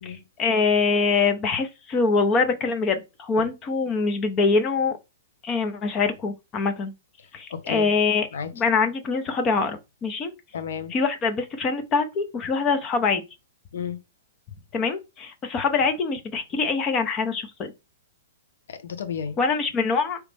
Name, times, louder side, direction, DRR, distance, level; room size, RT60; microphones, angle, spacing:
voice 1, 0.0-5.0 5.4-6.9 7.3-8.3 8.5-10.3 10.9-13.2 14.7-17.7 19.4-20.2, left 4 dB, 25° left, 0.8 m, -24 dB
voice 2, 7.5-7.9 8.3-8.5 10.5-10.9 13.7-14.0 18.7-19.4, left 7 dB, 65° left, 0.8 m, -32 dB
4.9 x 3.2 x 3.4 m
figure-of-eight pair, 110°, 0 cm